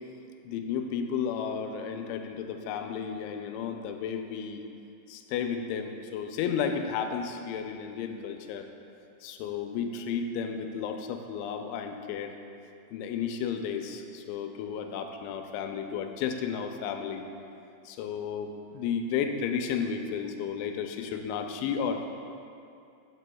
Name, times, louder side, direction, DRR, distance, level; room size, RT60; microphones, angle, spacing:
voice 1, 0.5-4.6 5.1-8.7 9.2-12.3 12.9-17.3 17.9-22.1, left 7 dB, 85° left, 5 dB, 3.0 m, -33 dB
14.5 x 7.5 x 2.3 m, 2.6 s
omnidirectional pair, 5.3 m